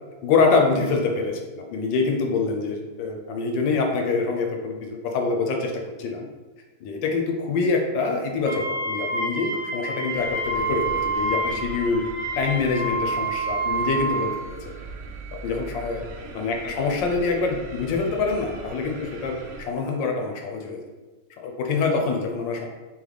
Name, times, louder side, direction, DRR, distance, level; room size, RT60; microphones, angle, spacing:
voice 1, 0.2-6.3 6.8-12.1 12.4-14.7 15.3-16.0 16.3-20.8 21.4-22.7, left 4 dB, 75° left, 2 dB, 1.3 m, -25 dB
Wind instrument woodwind instrument, 8.5-14.4, right 2 dB, 10° left, 0.4 m, -28 dB
sound 1, 10.1-19.6, right 2 dB, 85° right, 0.7 m, -40 dB
4.0 x 3.1 x 3.2 m, 1.3 s
omnidirectional pair, 2.1 m